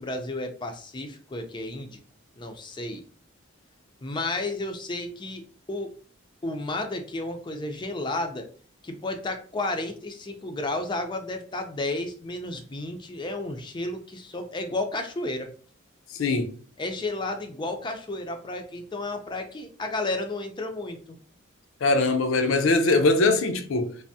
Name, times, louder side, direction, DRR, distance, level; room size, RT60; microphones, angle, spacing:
voice 1, 0.0-2.0 2.4-3.0 4.0-5.4 5.7-5.9 6.4-8.5 8.8-15.5 16.8-21.2, left 2 dB, 20° left, 0.4 m, -32 dB
voice 2, 16.2-16.5 21.8-24.0, left 3 dB, 80° left, 0.5 m, -22 dB
3.3 x 2.0 x 2.6 m
head